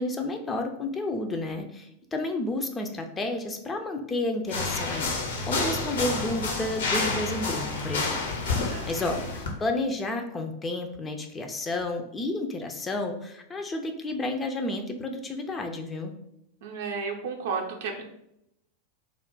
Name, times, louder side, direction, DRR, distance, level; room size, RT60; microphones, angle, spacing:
voice 1, 0.0-5.2 5.5-8.2 8.5-16.1, left 2 dB, 15° left, 4 dB, 0.4 m, -31 dB
sound 1, 4.5-9.5, left 3 dB, 60° left, 0.6 m, -29 dB
voice 2, 8.1-9.2 16.6-18.0, right 5 dB, 55° right, 2 dB, 0.5 m, -34 dB
2.4 x 2.1 x 3.7 m, 0.80 s
figure-of-eight pair, 90°, 0 cm